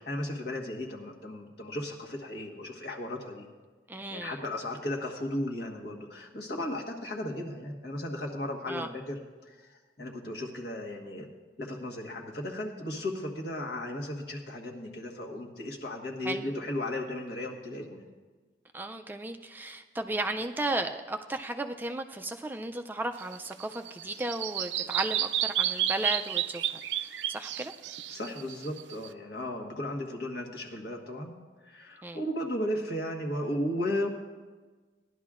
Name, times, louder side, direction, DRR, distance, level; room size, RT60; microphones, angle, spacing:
voice 1, 0.0-3.5 4.1-11.3 11.6-18.1 28.1-31.4 31.6-34.1, left 1 dB, 65° left, 1 dB, 1.4 m, -35 dB
voice 2, 3.9-4.4 8.7-8.9 16.2-16.4 18.7-27.7 32.0-32.2, right 2 dB, 10° right, 5 dB, 0.3 m, -35 dB
Bird vocalization bird call bird song, 23.2-29.1, right 11 dB, 80° right, 0.4 m, -31 dB
17.5 x 11.0 x 2.5 m, 1.4 s
head